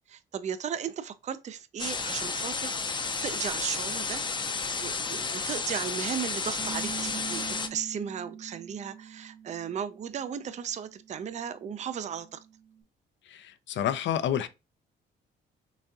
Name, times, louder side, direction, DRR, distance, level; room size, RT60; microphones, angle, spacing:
voice 1, 0.1-4.2 4.8-12.4, right 8 dB, 35° right, 0.4 m, -36 dB
sound 1, 1.8-7.7, left 4 dB, 25° left, 0.5 m, -32 dB
Bass guitar, 6.6-12.8, right 8 dB, 5° right, 0.8 m, -45 dB
voice 2, 13.3-14.5, left 10 dB, 70° left, 0.5 m, -29 dB
4.0 x 3.5 x 2.3 m
cardioid pair, 90°, 20 cm